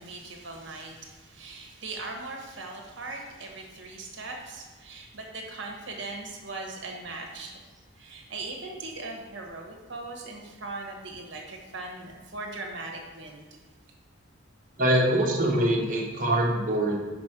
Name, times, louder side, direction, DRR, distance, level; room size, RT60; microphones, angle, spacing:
voice 1, 0.0-7.6 8.0-13.5, right 3 dB, 60° right, 1 dB, 1.3 m, -39 dB
voice 2, 14.8-17.0, right 1 dB, 40° right, -2 dB, 1.3 m, -24 dB
5.4 x 5.2 x 6.0 m, 1.4 s
head